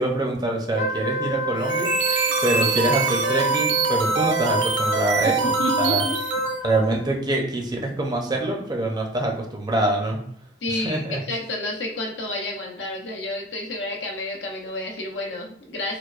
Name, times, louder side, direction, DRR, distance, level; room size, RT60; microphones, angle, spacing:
voice 1, 0.0-1.9 2.4-6.1 6.6-10.2 10.7-11.2, right 1 dB, 25° right, 1 dB, 0.6 m, -25 dB
Wind instrument woodwind instrument, 0.7-7.0, right 1 dB, 45° left, 0.5 m, -28 dB
sound 1, 1.6-6.6, right 5 dB, 80° right, 0.4 m, -24 dB
voice 2, 5.2-6.2 10.6-16.0, left 1 dB, 85° left, 0 dB, 0.7 m, -30 dB
4.7 x 2.1 x 2.4 m, 0.63 s
head